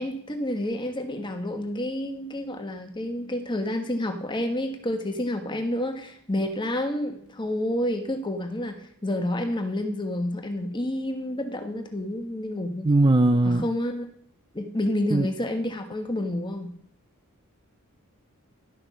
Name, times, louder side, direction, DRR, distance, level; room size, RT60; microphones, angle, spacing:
voice 1, 0.0-12.9 13.4-14.0 14.5-16.7, left 1 dB, 20° left, 5 dB, 1.4 m, -29 dB
voice 2, 12.8-13.7 15.1-15.3, right 2 dB, 20° right, 9 dB, 0.5 m, -19 dB
12.0 x 6.5 x 6.1 m, 0.64 s
head